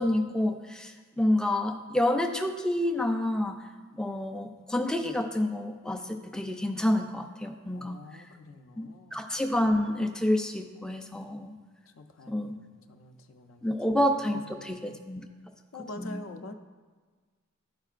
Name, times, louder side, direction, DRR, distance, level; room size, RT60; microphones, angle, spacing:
voice 1, 0.0-3.6 4.0-8.3 8.8-11.5 12.3-12.5 13.6-15.3 16.0-16.2, left 1 dB, 5° left, 4 dB, 0.4 m, -28 dB
voice 2, 7.7-9.3 12.0-15.0 15.7-16.5, left 2 dB, 70° left, 7 dB, 0.5 m, -46 dB
12.0 x 4.5 x 2.4 m, 1.4 s
head